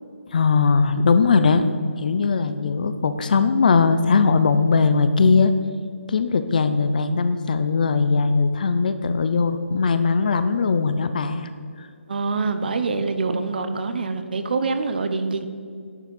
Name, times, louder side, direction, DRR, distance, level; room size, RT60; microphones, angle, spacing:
voice 1, 0.3-1.6 2.0-5.5 6.1-11.5 11.8-11.9, left 4 dB, 40° left, 11 dB, 0.6 m, -19 dB
voice 2, 12.1-15.5, right 4 dB, 45° right, 9 dB, 0.8 m, -25 dB
11.0 x 9.1 x 5.4 m, 2.3 s
hypercardioid pair, 170°, 7 cm